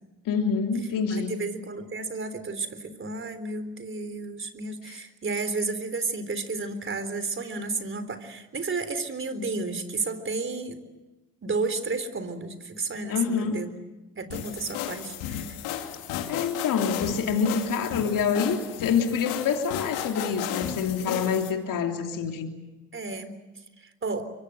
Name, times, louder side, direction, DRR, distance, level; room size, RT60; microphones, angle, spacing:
voice 1, 0.2-1.4 4.9-5.0 13.1-13.6 16.3-22.5, left 6 dB, 60° left, 3.1 m, -26 dB
voice 2, 1.1-10.8 11.4-13.7 14.2-15.6 22.9-23.3 23.8-24.3, right 3 dB, 35° right, 3.8 m, -32 dB
sound 1, 14.3-21.5, left 10 dB, 85° left, 2.6 m, -34 dB
25.0 x 24.5 x 7.9 m
supercardioid pair, 65°, 36 cm